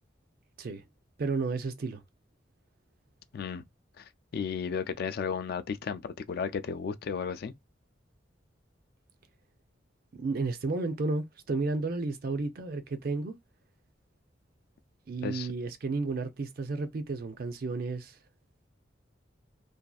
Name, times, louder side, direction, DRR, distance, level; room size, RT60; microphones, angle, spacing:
voice 1, 1.2-2.0 10.2-13.4 15.1-18.2, right 3 dB, 55° right, 0.5 m, -32 dB
voice 2, 3.3-3.6 4.0-4.1 4.3-7.5 15.2-15.5, left 6 dB, 55° left, 0.3 m, -34 dB
2.5 x 2.4 x 2.3 m
head